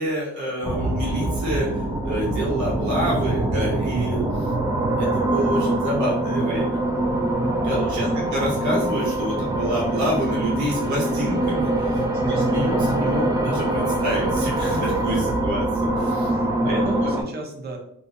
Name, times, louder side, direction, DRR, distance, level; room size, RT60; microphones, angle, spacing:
voice 1, 0.0-6.8 7.6-16.3 16.6-17.0, equal, 70° right, -4 dB, 1.1 m, -27 dB
sound 1, 0.6-17.2, right 1 dB, 10° right, 0.3 m, -24 dB
voice 2, 7.3-7.9 11.8-12.3 16.0-17.8, right 3 dB, 35° right, 0 dB, 0.7 m, -36 dB
2.4 x 2.1 x 2.6 m, 0.70 s
cardioid pair, 90°, 30 cm